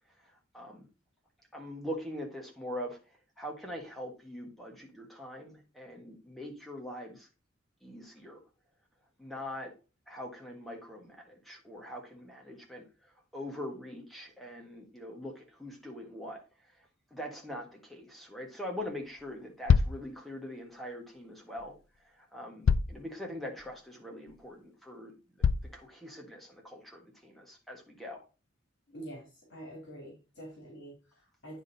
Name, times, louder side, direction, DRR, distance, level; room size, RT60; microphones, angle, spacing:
voice 1, 0.5-0.9 1.5-3.0 3.4-7.3 7.8-8.4 9.2-9.7 10.1-12.9 13.3-16.4 17.1-21.7 22.3-25.1 25.7-28.2, left 1 dB, ahead, 0 dB, 1.6 m, -42 dB
sound 1, 19.2-19.3 19.7-20.0 21.6-21.7 22.6-23.0 23.6-23.7 24.3-24.4 25.4-25.7, left 6 dB, 85° left, 0.4 m, -25 dB
voice 2, 28.9-31.6, right 1 dB, 60° left, -1 dB, 2.9 m, -46 dB
9.6 x 3.7 x 4.0 m, 0.32 s
head